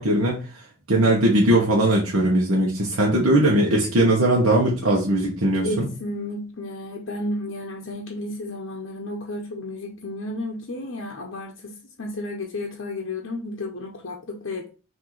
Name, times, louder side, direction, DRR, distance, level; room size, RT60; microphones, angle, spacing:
voice 1, 0.0-5.9, right 1 dB, 80° right, 1.0 m, -20 dB
voice 2, 5.6-14.7, left 1 dB, 60° left, 0.6 m, -32 dB
5.9 x 2.7 x 3.1 m
head